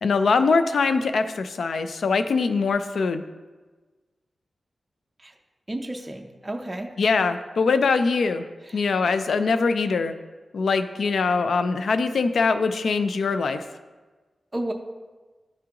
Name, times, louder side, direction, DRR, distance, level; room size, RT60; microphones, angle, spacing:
voice 1, 0.0-3.2 7.0-8.4 8.7-10.1 10.5-13.6, left 4 dB, 75° left, 10 dB, 0.4 m, -22 dB
voice 2, 5.7-6.9 8.7-8.8 14.5-14.7, right 1 dB, 15° right, 3 dB, 0.5 m, -32 dB
11.0 x 3.7 x 2.9 m, 1.3 s
wide cardioid pair, 105°, 0 cm